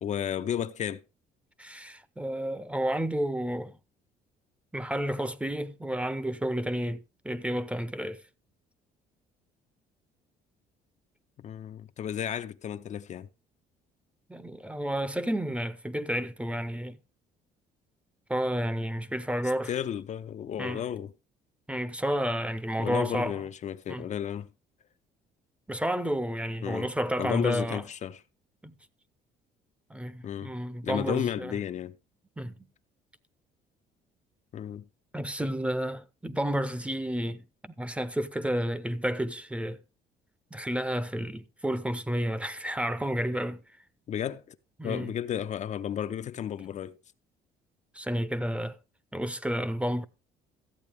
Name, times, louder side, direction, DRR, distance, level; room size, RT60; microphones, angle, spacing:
voice 1, 0.0-1.0 11.4-13.3 19.7-21.1 22.8-24.5 26.6-26.9 27.2-28.2 30.2-30.5 30.8-32.0 34.5-34.8 44.1-44.6 44.8-47.0, left 9 dB, 45° left, 0.5 m, -33 dB
voice 2, 1.6-3.7 4.7-8.2 14.3-17.0 18.3-19.7 20.6-20.8 21.7-23.4 23.9-24.1 25.7-27.8 28.6-28.7 29.9-31.5 32.4-32.7 35.1-39.8 40.5-43.6 44.8-45.1 47.9-48.8 49.1-50.0, equal, 5° right, 0.7 m, -31 dB
14.0 x 8.4 x 3.4 m
cardioid pair, 110°, 17 cm